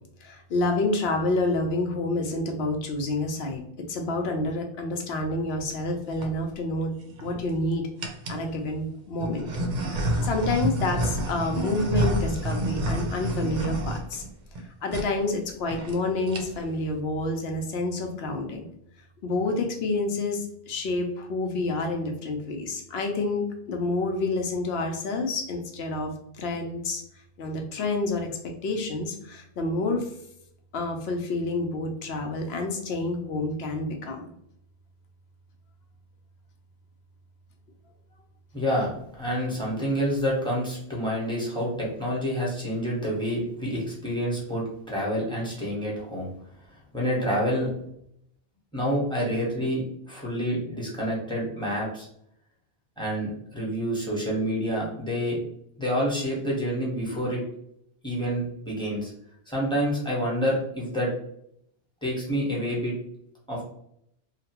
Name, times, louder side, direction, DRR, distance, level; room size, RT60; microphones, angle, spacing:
voice 1, 0.2-6.9 7.2-7.9 8.3-14.2 14.8-18.7 19.2-27.0 27.4-28.4 28.6-30.1 30.7-34.3, left 2 dB, 80° left, 3 dB, 0.9 m, -28 dB
sound 1, 5.9-6.3 7.0-7.5 8.0-8.5 9.2-14.6 14.9-15.1 15.4-15.5 15.7-16.0 16.2-16.7, right 1 dB, 55° right, 0.6 m, -29 dB
voice 2, 38.5-38.9 39.2-46.3 46.9-47.7 48.7-52.1 53.0-55.4 55.8-57.4 58.0-59.1 59.5-61.1 62.0-62.9 63.5-63.7, equal, 5° left, -4 dB, 0.9 m, -28 dB
2.9 x 2.2 x 2.8 m, 0.73 s
omnidirectional pair, 1.0 m